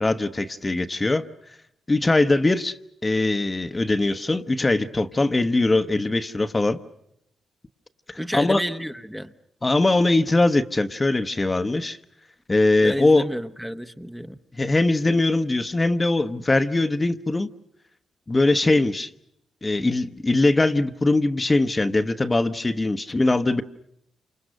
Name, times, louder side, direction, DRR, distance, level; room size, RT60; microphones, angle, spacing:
voice 1, 0.0-1.2 1.9-6.8 8.1-8.6 9.6-12.0 12.5-13.2 14.5-17.5 18.3-19.1 19.6-23.6, left 2 dB, 25° left, 1.1 m, -21 dB
voice 2, 8.2-9.3 12.8-14.4, equal, ahead, 1.0 m, -31 dB
28.0 x 26.5 x 6.5 m
supercardioid pair, 55°, 0 cm